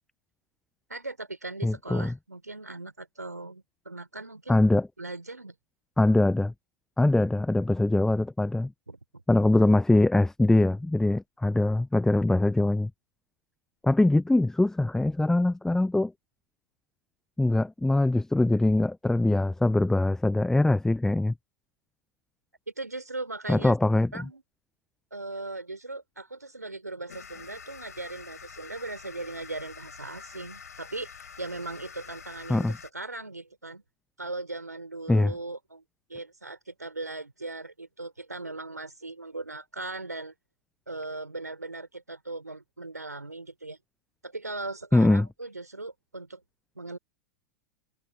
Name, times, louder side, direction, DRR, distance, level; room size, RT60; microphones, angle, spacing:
voice 1, 0.9-4.6 5.0-5.5 8.9-9.2 22.8-23.8 24.1-24.4 25.1-33.8 34.2-35.8 36.1-40.3 40.9-43.8 44.2-46.4 46.7-47.0, right 2 dB, 90° right, 4.7 m, -39 dB
voice 2, 1.6-2.1 4.5-4.9 6.0-6.5 7.0-8.7 9.3-12.9 13.8-16.1 17.4-21.3 23.5-24.1 32.5-32.7 35.1-35.3 44.9-45.3, left 2 dB, 5° left, 0.9 m, -22 dB
sound 1, 27.1-32.9, left 6 dB, 75° left, 5.2 m, -46 dB
figure-of-eight pair, 90°, 9 cm